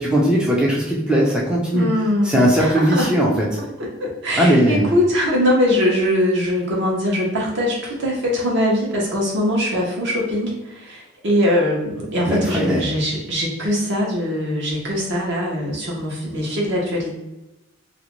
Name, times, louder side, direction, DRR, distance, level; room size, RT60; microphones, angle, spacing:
voice 1, 0.0-1.9 2.2-3.5 4.4-4.8 12.2-12.8, equal, 5° right, -5 dB, 0.4 m, -18 dB
voice 2, 1.7-17.1, left 1 dB, 60° right, -3 dB, 0.8 m, -22 dB
2.5 x 2.1 x 2.9 m, 0.96 s
head